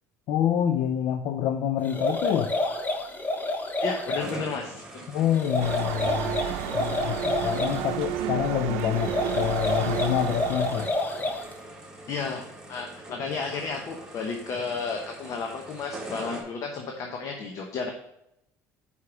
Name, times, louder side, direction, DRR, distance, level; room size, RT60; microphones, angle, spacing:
voice 1, 0.3-2.5 5.1-6.4 6.7-10.9, left 10 dB, 65° left, 7 dB, 0.5 m, -27 dB
sound 1, 1.8-4.3 5.3-7.8 9.0-11.5, left 2 dB, 25° left, 1.1 m, -29 dB
voice 2, 3.8-5.0 12.1-17.9, left 4 dB, 50° left, 2 dB, 1.0 m, -33 dB
sound 2, 4.2-16.4, right 2 dB, 10° right, 1.8 m, -43 dB
sound 3, 5.6-10.9, right 10 dB, 90° right, 0.6 m, -31 dB
5.6 x 4.8 x 5.9 m, 0.82 s
supercardioid pair, 95°, 7 cm